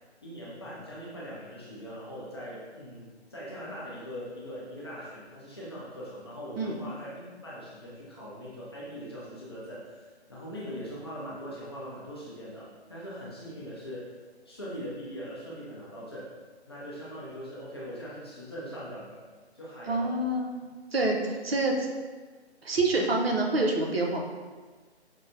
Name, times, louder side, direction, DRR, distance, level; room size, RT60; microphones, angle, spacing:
voice 1, 0.2-14.2 14.5-16.3 16.7-19.2 19.5-20.2, equal, 25° left, -8 dB, 0.5 m, -41 dB
voice 2, 19.9-20.5 20.9-21.9 22.6-24.2, right 2 dB, 60° right, 1 dB, 0.7 m, -26 dB
5.4 x 2.0 x 2.6 m, 1.4 s
figure-of-eight pair, 145°, 34 cm